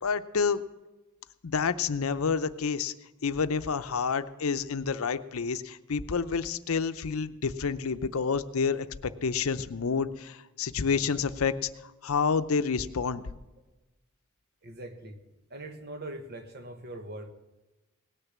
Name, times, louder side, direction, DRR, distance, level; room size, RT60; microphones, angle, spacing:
voice 1, 0.0-0.6 1.4-2.9 3.2-13.3, left 5 dB, 80° left, 12 dB, 0.6 m, -29 dB
voice 2, 14.6-15.2 15.5-17.3, right 1 dB, 50° right, 7 dB, 1.3 m, -41 dB
18.0 x 6.7 x 7.3 m, 1.1 s
head